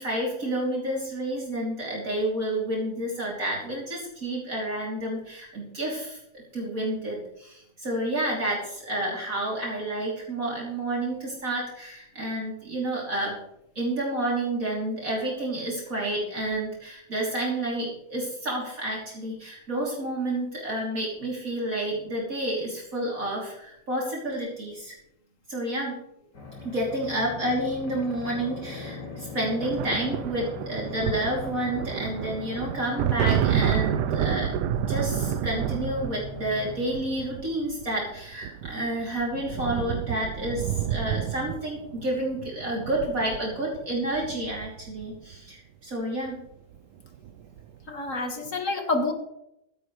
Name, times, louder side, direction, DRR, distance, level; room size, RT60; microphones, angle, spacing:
voice 1, 0.0-13.3 13.8-24.9 25.5-26.0 26.6-34.5 34.8-46.4, right 1 dB, 50° right, -4 dB, 3.6 m, -30 dB
sound 1, 26.3-36.8, left 4 dB, 85° left, 3.2 m, -40 dB
sound 2, 29.6-45.4 46.5-46.8 47.1-47.8, right 10 dB, 75° right, 1.2 m, -30 dB
voice 2, 47.9-49.1, left 3 dB, 50° left, 4 dB, 2.1 m, -28 dB
16.0 x 12.5 x 3.2 m, 0.80 s
omnidirectional pair, 1.8 m